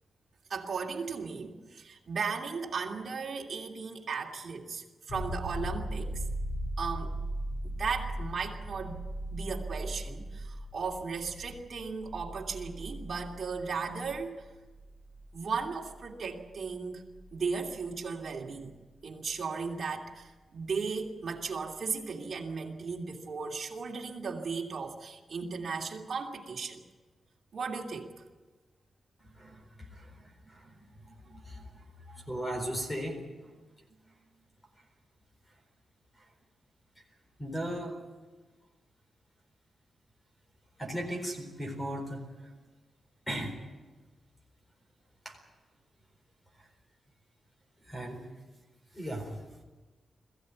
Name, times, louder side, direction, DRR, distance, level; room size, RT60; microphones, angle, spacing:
voice 1, 0.5-6.2 6.8-7.2 7.6-9.0 9.3-14.4 15.3-17.0 17.3-18.7 19.0-26.8 27.5-28.1, right 5 dB, 45° right, -1 dB, 2.9 m, -36 dB
sound 1, 5.1-18.6 21.3-21.4, right 1 dB, 50° left, 7.3 m, -39 dB
voice 2, 29.3-30.8 31.0-31.7 32.1-33.2 37.4-38.0 40.8-42.3 43.3-43.6 45.2-45.4 47.8-48.3 48.9-49.4, equal, 10° left, 3 dB, 4.3 m, -37 dB
22.0 x 15.5 x 9.6 m, 1.3 s
wide cardioid pair, 175°, 0 cm